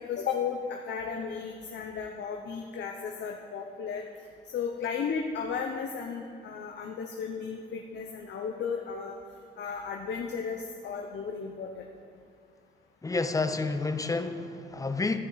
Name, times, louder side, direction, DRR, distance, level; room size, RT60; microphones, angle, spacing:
voice 1, 0.0-4.0 4.5-9.1 9.6-11.7, left 6 dB, 60° left, 1 dB, 0.8 m, -34 dB
voice 2, 13.0-15.2, left 3 dB, 15° left, 8 dB, 0.6 m, -29 dB
14.0 x 5.9 x 4.1 m, 2.4 s
cardioid pair, 90°, 20 cm